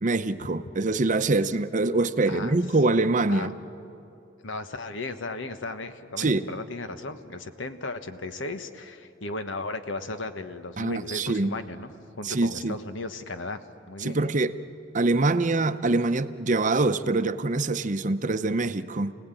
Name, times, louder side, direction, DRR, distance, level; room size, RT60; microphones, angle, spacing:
voice 1, 0.0-3.5 6.2-6.5 10.8-11.6 12.2-12.8 14.0-14.6 14.9-19.1, right 2 dB, 40° right, 11 dB, 0.7 m, -24 dB
voice 2, 2.3-2.6 3.3-3.5 4.4-14.3, left 2 dB, 85° left, 9 dB, 1.3 m, -36 dB
27.5 x 18.0 x 9.0 m, 2.7 s
head